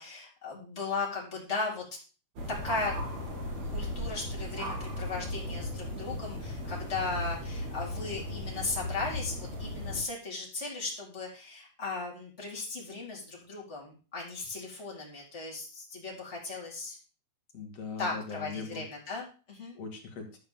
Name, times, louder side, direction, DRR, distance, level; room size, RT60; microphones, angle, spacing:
voice 1, 0.0-1.8 2.5-3.0 3.7-17.0 18.0-19.8, left 3 dB, 20° left, -3 dB, 4.3 m, -37 dB
sound 1, 2.4-10.0, left 1 dB, 65° right, 4.2 m, -36 dB
voice 2, 17.5-18.8 19.7-20.4, left 5 dB, 55° left, 3 dB, 3.6 m, -40 dB
12.5 x 5.6 x 7.4 m, 0.35 s
omnidirectional pair, 3.4 m